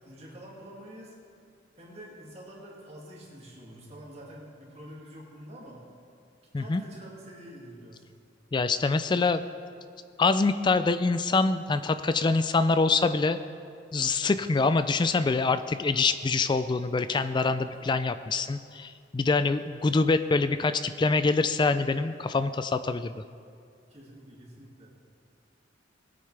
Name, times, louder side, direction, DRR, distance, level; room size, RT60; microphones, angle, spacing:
voice 1, 0.0-1.1 1.8-5.8 6.6-8.0 14.2-14.3 17.7-17.9 23.9-24.9, equal, 35° right, -4 dB, 2.2 m, -47 dB
voice 2, 8.5-9.4 10.2-13.4 13.9-23.1, left 3 dB, 25° left, 11 dB, 0.3 m, -25 dB
20.0 x 8.7 x 3.3 m, 2.3 s
head